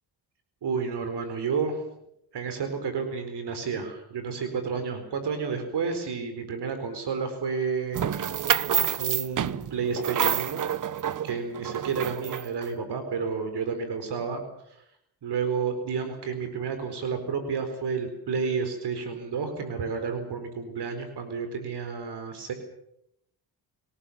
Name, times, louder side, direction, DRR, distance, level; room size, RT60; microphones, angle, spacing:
voice 1, 0.6-1.8 2.3-8.0 9.0-10.6 11.2-14.4 15.2-22.5, right 5 dB, 70° right, 8 dB, 4.3 m, -31 dB
sound 1, 7.9-12.6, right 9 dB, 45° right, 1.0 m, -28 dB
25.5 x 19.0 x 7.2 m, 0.77 s
cardioid pair, 100°, 42 cm